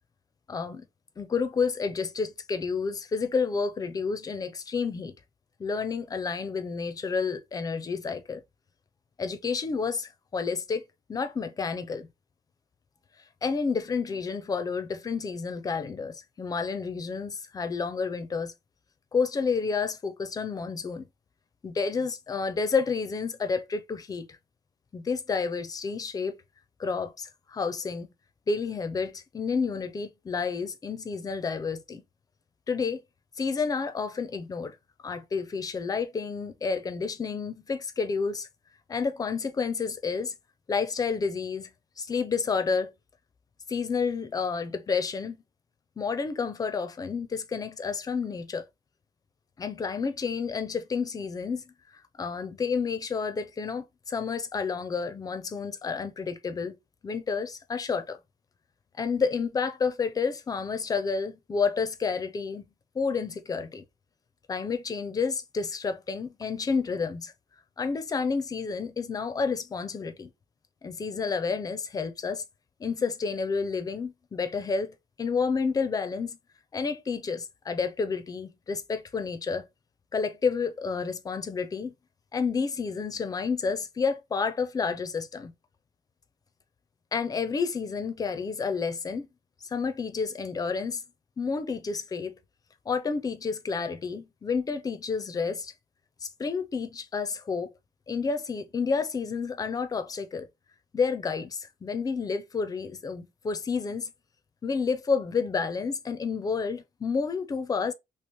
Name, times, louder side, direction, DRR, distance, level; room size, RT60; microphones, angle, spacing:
voice 1, 0.5-0.8 1.2-5.1 5.6-8.4 9.2-10.8 11.1-12.1 13.4-18.5 19.1-21.1 21.6-24.3 24.9-26.3 26.8-28.1 28.5-32.0 32.7-33.0 33.4-34.7 35.0-38.5 38.9-40.3 40.7-41.7 42.0-42.9 43.7-45.4 46.0-48.6 49.6-51.6 52.2-56.7 57.0-58.2 59.0-62.6 62.9-63.8 64.5-67.3 67.8-70.3 70.8-72.4 72.8-76.4 76.7-79.6 80.1-81.9 82.3-85.5 87.1-89.3 89.7-91.0 91.4-92.3 92.9-95.7 96.2-97.7 98.1-100.5 100.9-104.1 104.6-107.9, left 5 dB, 25° left, 0.4 m, -30 dB
3.1 x 2.8 x 3.2 m
cardioid pair, 175°, 16 cm